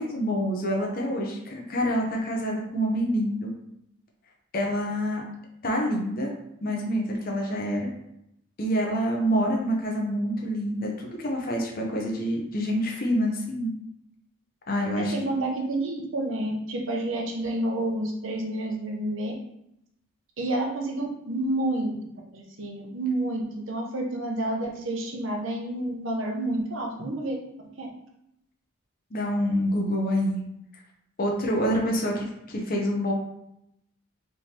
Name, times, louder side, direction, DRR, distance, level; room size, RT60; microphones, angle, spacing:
voice 1, 0.0-3.5 4.5-5.3 5.6-6.3 6.6-7.9 8.6-13.7 14.7-15.3 29.1-30.4 31.2-33.1, equal, 40° left, 0 dB, 0.7 m, -27 dB
voice 2, 15.0-19.3 20.4-21.9 22.3-27.4 27.8-27.9, right 1 dB, 60° right, 0 dB, 0.8 m, -29 dB
4.3 x 3.5 x 2.9 m, 0.80 s
head